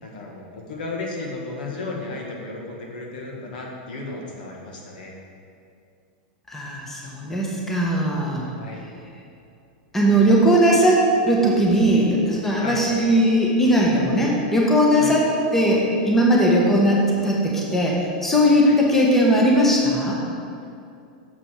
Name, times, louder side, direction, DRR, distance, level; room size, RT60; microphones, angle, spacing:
voice 1, 0.0-5.2 8.5-8.8 12.6-12.8 15.0-15.1 18.6-18.8, left 3 dB, 75° left, -1 dB, 1.6 m, -34 dB
voice 2, 6.5-8.5 9.9-20.2, equal, 5° left, -3 dB, 0.9 m, -19 dB
6.8 x 5.0 x 5.9 m, 2.5 s
supercardioid pair, 155°, 5 cm